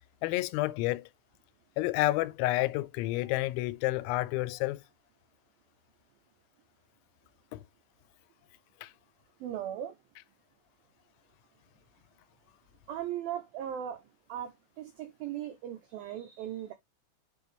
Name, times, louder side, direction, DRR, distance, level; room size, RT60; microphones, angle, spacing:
voice 1, 0.2-1.1 1.8-4.8 7.5-7.6 8.8-8.9, left 18 dB, 90° left, 3.0 m, -30 dB
voice 2, 9.4-9.9 12.9-14.0 14.3-16.7, right 10 dB, 85° right, 2.1 m, -38 dB
8.0 x 4.6 x 3.4 m
omnidirectional pair, 5.2 m